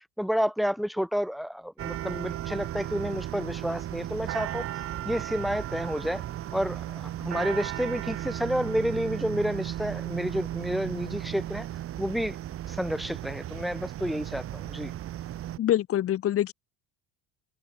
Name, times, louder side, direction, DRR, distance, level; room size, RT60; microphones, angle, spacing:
voice 1, 0.0-4.7 5.0-6.2 6.5-11.7 12.0-12.4 12.7-14.9, equal, ahead, 1.0 m, -30 dB
sound 1, 1.8-15.6, right 12 dB, 35° right, 0.6 m, -35 dB
voice 2, 15.6-16.5, left 12 dB, 35° left, 0.7 m, -25 dB
cardioid pair, 145°, 42 cm